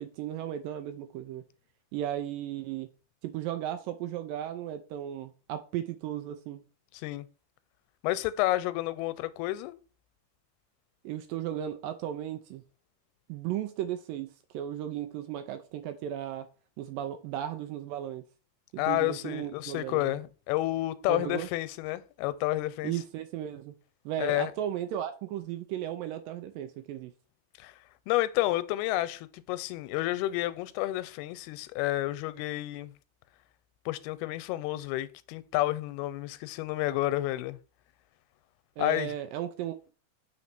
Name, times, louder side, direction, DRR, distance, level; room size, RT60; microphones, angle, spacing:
voice 1, 0.0-1.4 1.9-2.9 3.2-6.6 11.0-12.6 13.3-16.5 16.8-18.2 18.7-20.2 21.1-21.5 22.8-23.8 24.1-27.1 38.8-39.9, right 11 dB, 80° right, 2.1 m, -35 dB
voice 2, 6.9-7.3 8.0-9.8 18.8-22.9 24.2-24.5 27.6-27.7 28.1-32.9 33.9-37.6 38.8-39.2, left 16 dB, 90° left, 2.5 m, -30 dB
5.1 x 4.2 x 5.9 m
omnidirectional pair, 4.4 m